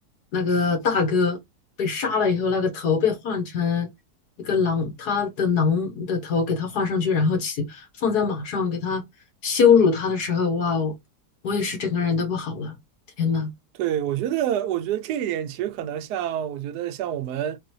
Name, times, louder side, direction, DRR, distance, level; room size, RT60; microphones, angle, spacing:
voice 1, 0.3-1.4 1.8-3.9 4.4-9.0 9.4-10.9 11.4-12.7 13.2-13.5, left 5 dB, 65° left, 1.8 m, -23 dB
voice 2, 13.8-17.6, right 11 dB, 75° right, 1.1 m, -27 dB
3.7 x 3.3 x 3.0 m
omnidirectional pair, 1.9 m